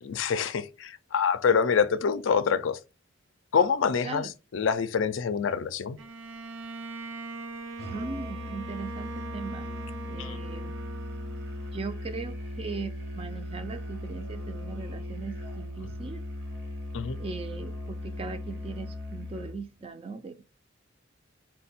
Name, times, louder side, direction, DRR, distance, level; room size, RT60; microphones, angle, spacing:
voice 1, 0.0-2.8 3.5-6.0 10.2-10.4 16.9-17.2, left 6 dB, 70° left, 0.4 m, -26 dB
Bowed string instrument, 6.0-11.7, right 3 dB, 85° right, 0.6 m, -41 dB
Musical instrument, 7.8-19.6, left 1 dB, 55° right, 1.0 m, -38 dB
voice 2, 7.9-9.7 10.1-10.7 11.7-16.2 17.2-20.4, right 4 dB, 30° right, 0.3 m, -39 dB
4.2 x 2.2 x 4.1 m
head